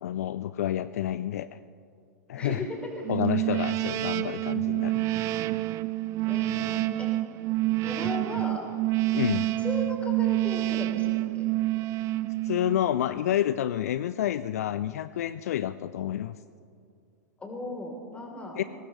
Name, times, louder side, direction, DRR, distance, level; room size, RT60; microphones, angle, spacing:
voice 1, 0.0-1.5 2.3-2.7 3.1-5.1 9.1-9.4 12.4-16.4 18.6-18.7, left 11 dB, 60° left, 14 dB, 0.4 m, -29 dB
voice 2, 2.4-3.0 3.4-3.6 6.2-7.1 7.8-8.6 9.3-11.1 11.3-11.5 17.4-18.6, left 1 dB, 15° left, 1 dB, 3.6 m, -36 dB
sound 1, 3.0-13.0, right 17 dB, 35° right, 0.5 m, -28 dB
22.0 x 18.5 x 3.2 m, 2.4 s
figure-of-eight pair, 95°, 9 cm